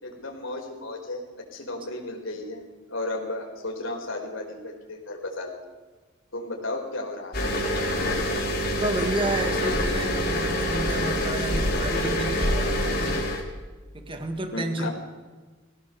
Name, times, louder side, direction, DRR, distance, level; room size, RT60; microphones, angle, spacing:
voice 1, 0.0-5.6 6.3-7.4 14.1-14.2 14.5-14.9, left 2 dB, 90° left, 1 dB, 4.9 m, -34 dB
sound 1, 7.3-13.4, left 1 dB, 50° left, 4.4 m, -26 dB
voice 2, 8.8-13.3 13.9-14.9, right 1 dB, 25° right, 6 dB, 1.9 m, -31 dB
22.5 x 17.0 x 7.0 m, 1.3 s
head